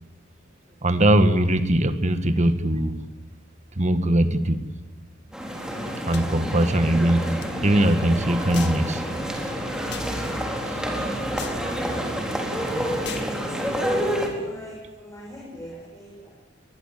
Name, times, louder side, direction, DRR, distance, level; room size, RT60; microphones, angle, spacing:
voice 1, 0.8-3.0 3.7-4.6 6.1-7.3 7.6-9.0 10.7-10.8, right 1 dB, 35° right, 10 dB, 1.7 m, -20 dB
sound 1, 5.3-14.3, equal, 5° right, 4.1 m, -28 dB
sound 2, 6.1-6.3 7.4-7.5 8.5-8.8 9.9-10.1 11.4-11.6 13.0-13.3, left 9 dB, 60° left, 1.8 m, -38 dB
voice 2, 13.6-16.3, equal, 15° left, -3 dB, 6.2 m, -44 dB
22.5 x 20.5 x 9.3 m, 1.1 s
head